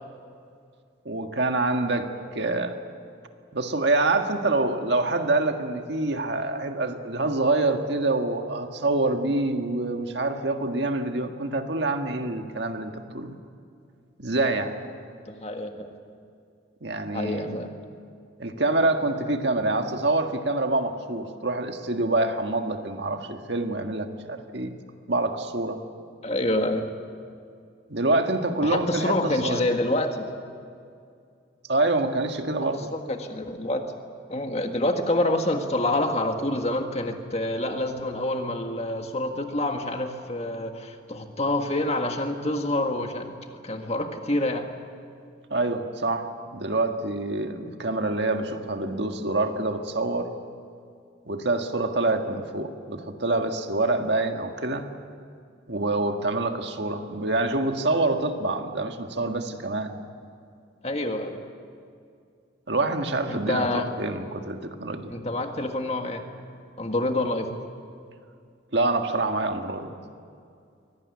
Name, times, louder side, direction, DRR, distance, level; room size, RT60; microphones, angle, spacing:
voice 1, 1.1-2.8 3.5-13.4 14.2-14.8 16.8-17.7 18.4-24.7 25.1-25.8 27.9-29.6 31.7-32.9 45.5-50.3 51.3-54.9 55.7-60.0 62.7-65.2 68.7-69.9, right 2 dB, 60° right, 5 dB, 1.8 m, -26 dB
voice 2, 15.3-15.9 17.1-17.7 26.2-26.8 28.6-30.3 32.9-33.8 34.3-43.3 43.6-44.7 60.8-61.4 63.3-63.9 65.1-66.2 66.8-67.6, left 1 dB, 30° left, 5 dB, 1.7 m, -27 dB
23.5 x 18.0 x 9.7 m, 2.3 s
head